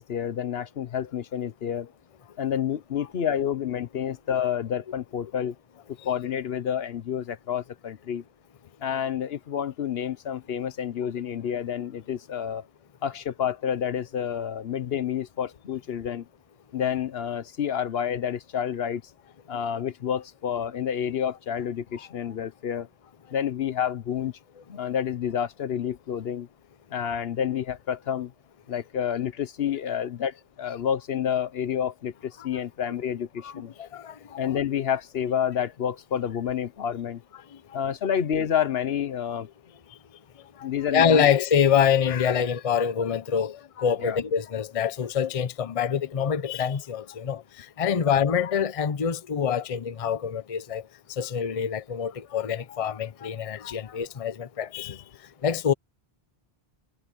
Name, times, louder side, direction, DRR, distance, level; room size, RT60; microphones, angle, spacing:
voice 1, 0.0-1.9 2.4-5.5 6.0-8.2 8.8-12.7 13.0-16.3 16.7-19.0 19.5-22.9 23.3-24.3 24.7-26.5 26.9-28.3 28.7-33.7 34.4-37.2 37.7-39.5 40.6-41.3 44.0-44.2, left 9 dB, 70° left, 1.0 m, -29 dB
voice 2, 33.4-34.6 40.6-50.8 51.1-55.0 55.4-55.7, left 7 dB, 40° left, 0.7 m, -26 dB
omnidirectional pair, 1.1 m